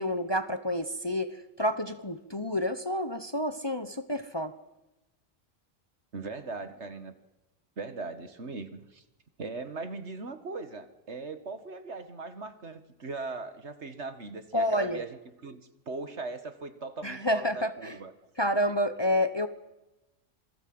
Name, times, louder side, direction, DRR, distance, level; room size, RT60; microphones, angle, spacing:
voice 1, 0.0-4.5 14.5-15.0 17.0-18.0 18.4-19.5, left 1 dB, 20° left, 10 dB, 1.1 m, -29 dB
voice 2, 6.1-7.1 7.8-9.0 9.4-18.1, right 3 dB, 60° right, 10 dB, 2.0 m, -39 dB
27.5 x 22.5 x 7.9 m, 0.98 s
omnidirectional pair, 1.3 m